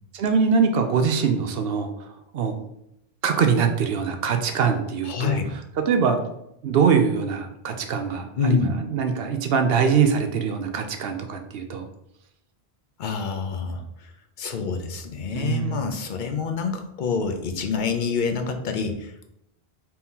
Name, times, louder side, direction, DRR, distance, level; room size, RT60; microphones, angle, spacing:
voice 1, 0.1-1.9 2.3-2.7 3.2-5.4 5.8-6.3 6.6-11.9 15.3-15.9, right 6 dB, 70° right, 6 dB, 0.8 m, -23 dB
voice 2, 5.0-5.5 8.4-8.8 13.0-14.1 14.4-19.3, left 5 dB, 55° left, 5 dB, 0.6 m, -27 dB
4.3 x 2.7 x 3.6 m, 0.80 s
omnidirectional pair, 1.1 m